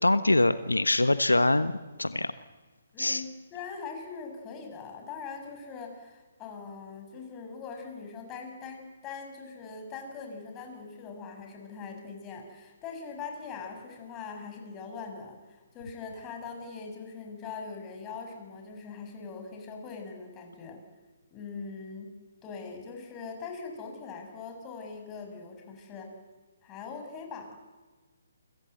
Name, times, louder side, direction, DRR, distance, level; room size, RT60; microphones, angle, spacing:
voice 1, 0.0-2.3 3.0-3.2, left 2 dB, 90° left, 12 dB, 1.2 m, -24 dB
voice 2, 2.9-20.8 21.3-22.2 22.4-26.1 26.6-27.6, left 5 dB, 20° left, 4 dB, 6.6 m, -42 dB
29.0 x 24.5 x 8.0 m, 1.3 s
figure-of-eight pair, 140°, 0 cm